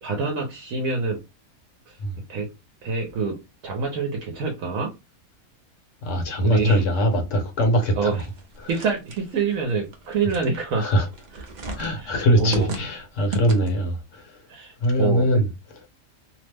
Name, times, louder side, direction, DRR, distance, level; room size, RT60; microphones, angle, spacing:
voice 1, 0.0-1.2 1.9-2.0 2.3-2.5 2.8-3.4 3.6-4.9 6.4-6.8 8.0-8.2 8.7-10.9 11.6-12.7 14.5-15.4, right 4 dB, 70° right, 1.1 m, -26 dB
voice 2, 6.0-8.2 8.6-8.7 10.8-11.1 11.8-14.4 14.8-15.5, equal, 60° left, 1.2 m, -22 dB
sound 1, 8.1-13.9, right 2 dB, 50° right, 0.5 m, -38 dB
2.9 x 2.0 x 3.2 m
omnidirectional pair, 1.5 m